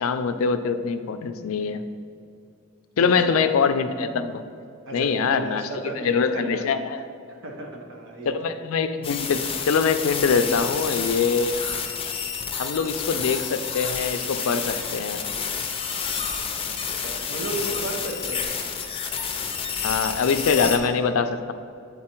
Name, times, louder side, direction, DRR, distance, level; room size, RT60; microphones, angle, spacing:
voice 1, 0.0-1.8 3.0-4.4 4.9-5.6 6.0-7.0 8.3-11.6 12.6-15.2 19.8-21.5, left 5 dB, 75° left, 9 dB, 0.4 m, -23 dB
voice 2, 3.0-3.5 4.9-6.6 7.3-8.3 17.0-18.5, right 2 dB, 60° right, 1 dB, 1.0 m, -34 dB
sound 1, 9.0-20.8, left 6 dB, 25° left, 0.5 m, -29 dB
8.5 x 4.0 x 4.4 m, 2.5 s
head